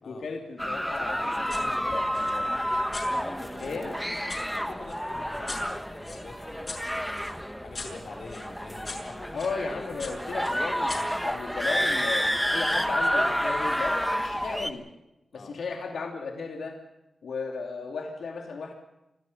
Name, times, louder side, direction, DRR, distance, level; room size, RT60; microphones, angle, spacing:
voice 1, 0.1-1.3 1.9-2.0 2.3-2.5 3.6-4.0 9.3-11.0 11.2-14.9 15.3-16.8 17.2-18.7, left 4 dB, 85° left, 2 dB, 2.7 m, -35 dB
sound 1, 0.6-14.7, equal, ahead, 1.1 m, -29 dB
voice 2, 1.2-3.8 4.5-6.8 7.6-9.5 9.9-10.4 15.3-15.5, left 3 dB, 65° left, 2 dB, 4.3 m, -46 dB
sound 2, 1.5-1.7 2.1-4.4 4.9-9.6 10.0-11.9, left 3 dB, 40° left, 6.7 m, -42 dB
26.0 x 14.5 x 7.8 m, 0.92 s
wide cardioid pair, 130°, 0 cm